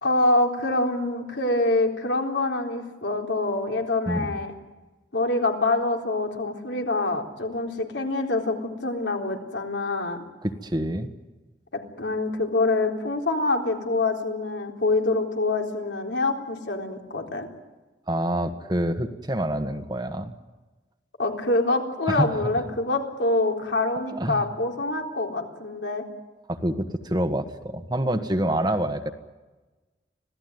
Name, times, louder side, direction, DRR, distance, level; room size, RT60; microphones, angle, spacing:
voice 1, 0.0-4.5 5.1-10.2 12.0-17.5 21.2-26.0, left 2 dB, 75° left, 2 dB, 3.9 m, -25 dB
voice 2, 10.4-11.1 18.1-20.3 22.1-22.3 24.1-24.5 26.5-29.1, right 1 dB, 25° right, 7 dB, 1.4 m, -26 dB
26.0 x 17.5 x 9.5 m, 1.2 s
head